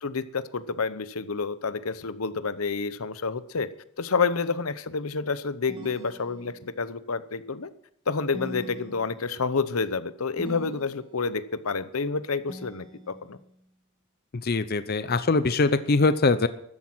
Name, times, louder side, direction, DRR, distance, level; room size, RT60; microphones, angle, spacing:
voice 1, 0.0-3.7 4.0-7.7 8.1-13.4, left 4 dB, 90° left, 14 dB, 0.8 m, -29 dB
sound 1, 5.7-6.9 8.3-9.5 10.4-11.3 12.5-13.5, left 1 dB, 25° right, 1.7 m, -43 dB
voice 2, 14.4-16.5, left 3 dB, 45° left, 12 dB, 0.6 m, -22 dB
14.0 x 11.5 x 6.1 m, 0.70 s
head